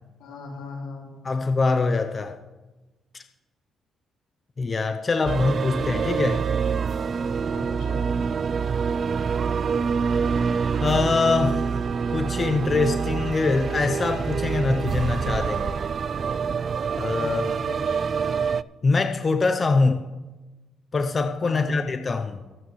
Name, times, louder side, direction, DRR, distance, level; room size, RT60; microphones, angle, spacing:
voice 1, 0.2-1.6 7.5-8.1 17.1-18.1 21.4-21.8, left 2 dB, 90° left, 0 dB, 2.7 m, -39 dB
voice 2, 1.2-2.4 3.1-3.2 4.6-6.4 10.8-11.7 12.1-15.8 17.0-17.5 18.8-20.0 20.9-22.4, left 3 dB, 35° left, 7 dB, 0.7 m, -23 dB
sound 1, 5.2-18.6, right 6 dB, 45° right, 0.3 m, -26 dB
21.0 x 8.6 x 3.2 m, 1.2 s
cardioid pair, 90°, 0 cm